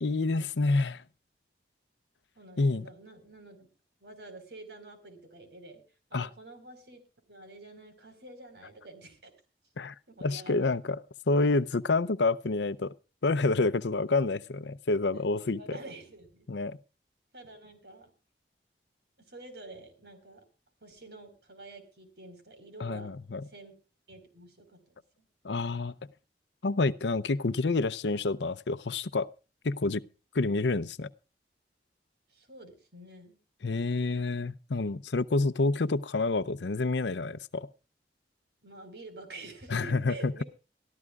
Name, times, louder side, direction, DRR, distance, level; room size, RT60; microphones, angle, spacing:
voice 1, 0.0-1.0 2.6-2.8 6.1-6.3 9.8-9.9 10.2-11.0 11.3-12.9 13.2-15.6 16.5-16.8 22.8-23.5 25.4-25.9 26.6-29.3 29.6-30.0 30.3-31.1 33.6-37.7 39.7-40.3, left 3 dB, 90° left, 0.7 m, -28 dB
voice 2, 2.4-3.7 4.0-5.8 6.1-7.0 7.3-9.3 10.2-10.7 15.1-16.5 17.3-18.1 19.3-20.4 20.8-23.1 23.5-23.7 24.1-25.3 32.3-33.4 38.6-40.4, right 2 dB, 80° right, 4.5 m, -48 dB
23.5 x 13.5 x 2.4 m
head